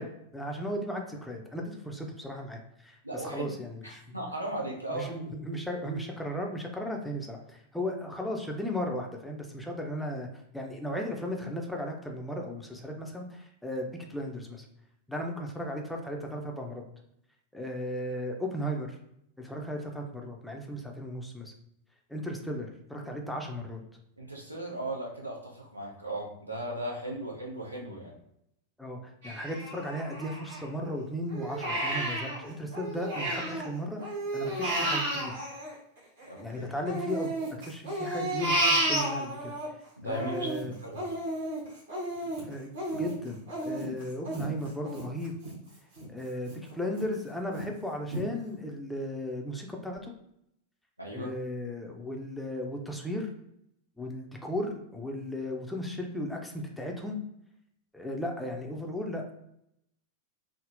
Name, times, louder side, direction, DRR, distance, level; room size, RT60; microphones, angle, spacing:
voice 1, 0.0-4.2 4.9-10.3 10.5-14.7 15.1-16.8 17.5-19.0 19.4-21.5 22.1-23.8 28.8-35.4 36.4-37.3 37.6-39.5 40.0-40.7 42.4-42.7 43.0-45.4 46.1-50.1 51.1-53.3 54.0-57.2 57.9-59.3, equal, 5° left, 1 dB, 0.5 m, -36 dB
voice 2, 3.0-3.6 3.8-5.1 24.2-28.1 36.3-36.6 40.0-41.0 51.0-51.3, right 1 dB, 85° right, -2 dB, 0.7 m, -37 dB
Crying sobbing, 29.2-30.9 31.3-33.7 34.0-36.4 36.9-39.7 40.1-45.5 46.0-46.1 46.5-47.1 47.6-47.7 48.1-48.2, right 1 dB, 60° right, 1.0 m, -32 dB
3.5 x 2.0 x 2.6 m, 0.75 s
figure-of-eight pair, 90°, 0 cm